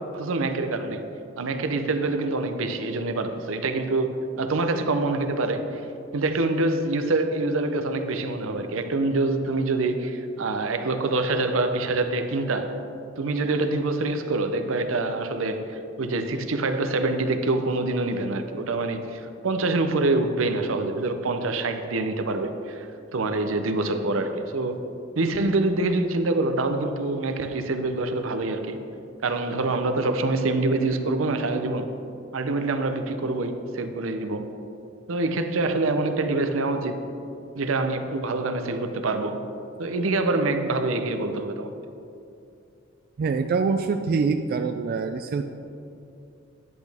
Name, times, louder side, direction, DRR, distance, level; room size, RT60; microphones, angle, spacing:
voice 1, 0.1-1.0 1.4-4.1 4.4-5.8 6.1-12.8 13.2-22.9 23.1-24.8 25.2-28.8 29.2-31.9 32.3-34.5 35.1-37.0 37.6-39.4 39.8-41.7, right 2 dB, 80° right, 8 dB, 0.7 m, -25 dB
voice 2, 43.2-45.4, right 4 dB, 50° right, 6 dB, 0.3 m, -25 dB
10.5 x 8.2 x 3.5 m, 2.6 s
head